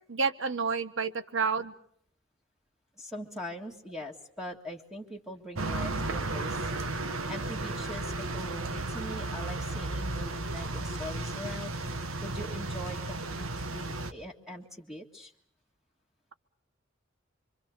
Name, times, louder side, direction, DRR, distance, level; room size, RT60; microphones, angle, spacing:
voice 1, 0.1-1.7, right 5 dB, 65° right, 11 dB, 1.2 m, -29 dB
voice 2, 3.0-6.6 7.3-11.7 12.2-13.5 13.7-15.3, equal, 5° right, 1 dB, 1.9 m, -42 dB
sound 1, 5.6-14.1, right 2 dB, 85° right, 1.6 m, -34 dB
26.0 x 25.0 x 6.7 m, 0.65 s
head